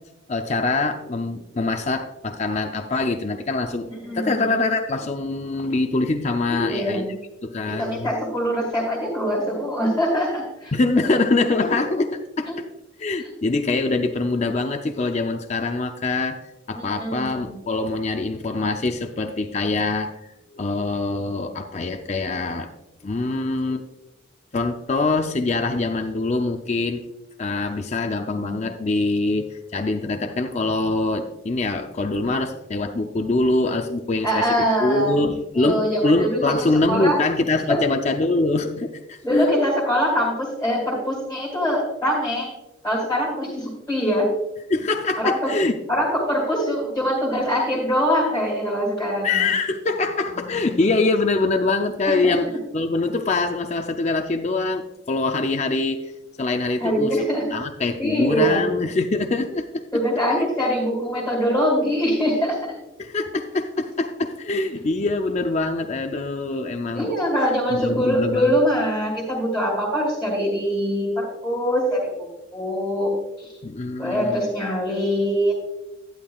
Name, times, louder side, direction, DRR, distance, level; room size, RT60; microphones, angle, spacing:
voice 1, 0.3-3.9 4.1-7.0 7.4-8.1 10.7-12.5 13.0-16.4 16.7-20.1 20.5-22.7 23.0-23.8 24.5-27.0 27.4-39.5 44.7-45.8 49.2-52.5 52.7-56.0 56.4-57.1 57.5-59.8 63.0-67.1 67.7-68.6 73.6-74.4, left 3 dB, 35° left, 4 dB, 0.5 m, -24 dB
voice 2, 4.0-4.5 6.5-7.1 7.7-10.7 11.6-11.7 12.5-12.6 16.7-17.5 28.3-28.7 34.2-35.2 35.6-37.2 37.7-37.8 39.2-42.5 42.8-44.3 45.2-45.5 45.9-49.5 52.0-52.6 56.8-57.4 58.0-58.6 59.9-62.8 66.9-72.1 72.5-73.6 74.0-75.6, equal, 5° left, -5 dB, 2.6 m, -23 dB
11.5 x 10.5 x 2.4 m, 0.97 s
head